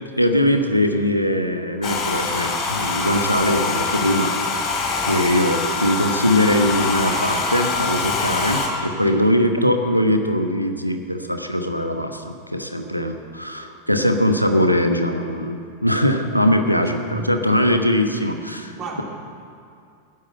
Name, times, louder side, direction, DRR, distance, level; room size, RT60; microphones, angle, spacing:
voice 1, 0.2-19.0, equal, 90° left, 6 dB, 1.1 m, -21 dB
Domestic sounds home sounds, 1.8-8.7, left 4 dB, 35° left, 2.8 m, -24 dB
voice 2, 18.7-19.0, right 5 dB, 30° right, 0 dB, 2.9 m, -33 dB
14.5 x 10.0 x 7.6 m, 2.4 s
figure-of-eight pair, 90°, 0 cm